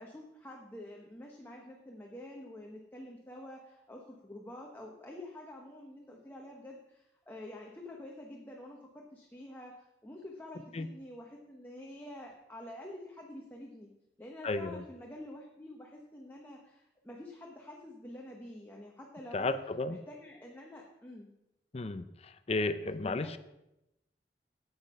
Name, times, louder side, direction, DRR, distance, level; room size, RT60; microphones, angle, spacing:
voice 1, 0.0-13.9 14.2-19.6 19.9-21.3 23.0-23.4, left 1 dB, 10° left, -1 dB, 1.0 m, -48 dB
voice 2, 14.4-14.8 19.3-20.0 21.7-23.4, left 2 dB, 35° left, 12 dB, 0.5 m, -33 dB
8.7 x 8.1 x 5.4 m, 0.88 s
head